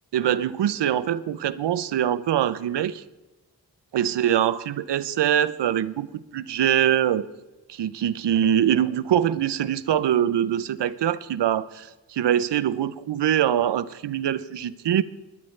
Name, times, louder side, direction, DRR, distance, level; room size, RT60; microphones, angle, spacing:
voice 1, 0.1-3.0 3.9-6.1 6.3-7.3 7.7-15.0, right 10 dB, 85° right, 15 dB, 0.6 m, -23 dB
20.5 x 10.5 x 3.2 m, 1.1 s
cardioid pair, 50°, 41 cm